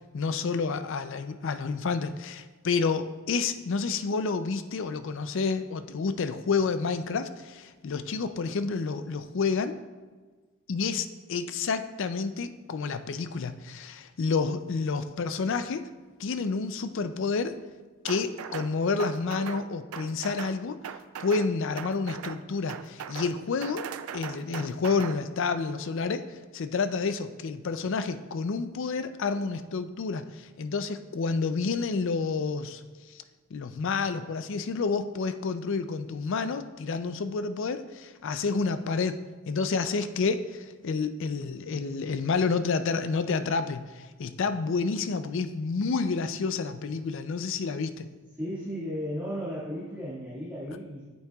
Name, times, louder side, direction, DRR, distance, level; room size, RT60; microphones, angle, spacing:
voice 1, 0.1-9.8 10.7-15.9 16.2-17.6 18.0-20.8 21.2-23.9 24.1-32.8 33.1-33.2 33.5-39.2 39.5-48.1, left 4 dB, 60° left, 11 dB, 0.4 m, -29 dB
sound 1, 18.1-18.7 19.0-19.6 19.9-20.6 20.8-21.5 21.8-22.4 22.7-23.3 23.6-25.2, right 8 dB, 80° right, 0.4 m, -38 dB
voice 2, 48.4-51.0, equal, 10° right, -11 dB, 1.8 m, -34 dB
8.7 x 8.2 x 2.3 m, 1.4 s
head